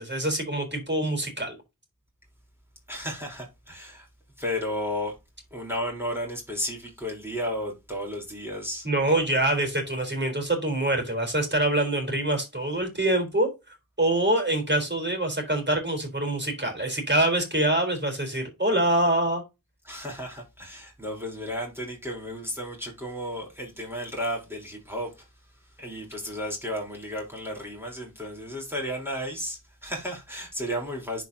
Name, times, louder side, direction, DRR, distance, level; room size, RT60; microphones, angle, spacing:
voice 1, 0.0-1.6 8.8-13.5 14.0-19.4, right 1 dB, 30° right, 3.6 m, -25 dB
voice 2, 2.9-4.1 4.4-5.1 5.5-9.4 19.8-25.3 25.8-31.2, equal, 5° right, 3.5 m, -33 dB
11.0 x 4.5 x 2.7 m
wide cardioid pair, 55°, 35 cm